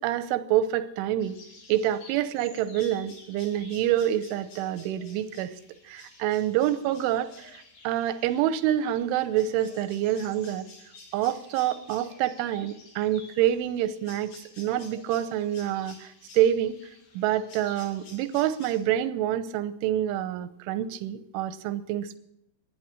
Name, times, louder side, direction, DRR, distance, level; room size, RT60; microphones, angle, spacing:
voice 1, 0.0-1.4 1.7-5.5 5.8-10.7 11.1-16.7 17.1-22.2, right 11 dB, 90° right, 13 dB, 3.3 m, -27 dB
sound 1, 1.2-18.8, left 3 dB, 50° left, 5.7 m, -51 dB
15.0 x 10.5 x 8.9 m, 0.80 s
omnidirectional pair, 5.5 m